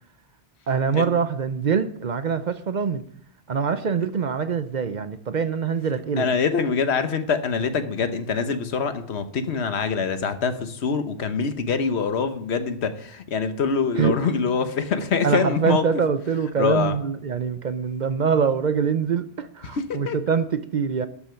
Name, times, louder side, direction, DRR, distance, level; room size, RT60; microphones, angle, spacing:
voice 1, 0.7-3.0 3.5-6.3 13.9-14.2 15.2-21.1, right 6 dB, 50° right, 12 dB, 0.7 m, -24 dB
voice 2, 6.2-16.0 16.6-17.0 19.6-20.2, left 5 dB, 85° left, 10 dB, 1.3 m, -24 dB
12.0 x 7.0 x 5.7 m, 0.64 s
omnidirectional pair, 1.1 m